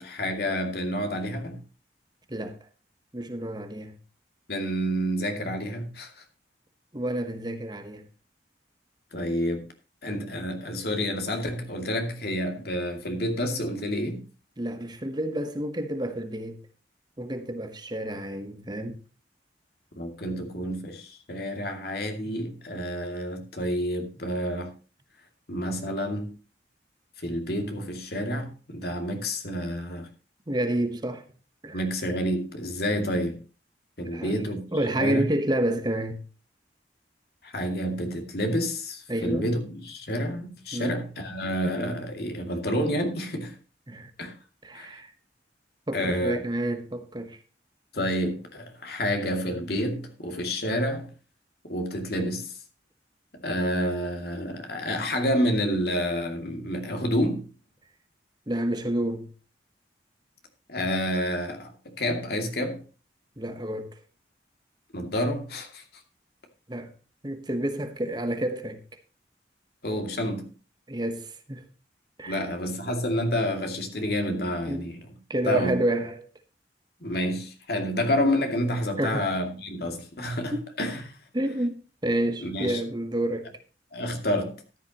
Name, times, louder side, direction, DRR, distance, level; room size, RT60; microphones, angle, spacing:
voice 1, 0.0-1.6 4.5-6.2 9.1-9.7 10.0-14.2 20.0-24.7 25.5-26.4 27.2-30.1 31.7-33.4 34.0-34.7 35.0-35.2 37.4-43.6 44.2-44.3 44.7-45.0 45.9-46.4 47.9-51.1 51.6-52.6 53.4-57.5 60.7-62.8 64.9-66.0 69.8-70.5 72.3-75.0 75.5-75.8 77.0-81.2 82.4-82.8 83.9-84.6, equal, 60° left, 2.5 m, -29 dB
voice 2, 3.1-4.0 6.9-8.0 14.6-16.6 17.2-19.0 30.5-31.2 31.6-31.9 34.0-34.4 34.7-36.2 39.1-39.5 40.7-41.0 43.9-44.1 44.6-45.1 45.9-47.4 58.5-59.3 63.4-64.0 66.7-66.9 67.2-68.8 70.9-71.7 72.2-72.5 74.7-74.9 75.3-76.3 79.0-79.3 80.5-80.6 81.3-83.5, right 1 dB, 25° right, 1.1 m, -29 dB
14.0 x 10.5 x 3.0 m
head